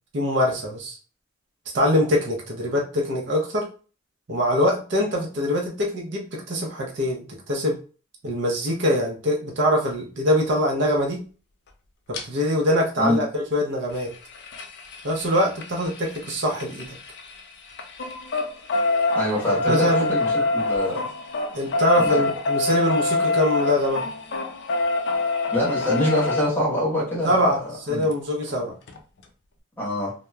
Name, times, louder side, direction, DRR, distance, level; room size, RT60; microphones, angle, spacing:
voice 1, 0.1-1.0 1.7-3.7 4.3-7.8 8.2-11.2 12.1-14.1 15.0-17.0 19.7-20.1 21.5-24.0 27.2-28.8, left 1 dB, 60° right, -1 dB, 0.6 m, -23 dB
sound 1, 12.1-12.2 13.9-17.4 17.7-26.4 28.1-28.2 28.5-28.6 28.9-29.0, left 2 dB, 60° left, 0.4 m, -25 dB
voice 2, 19.1-21.1 21.9-22.3 25.5-27.6 27.9-28.0 29.8-30.1, left 1 dB, 10° left, -5 dB, 1.0 m, -25 dB
2.8 x 2.1 x 2.2 m, 0.37 s
head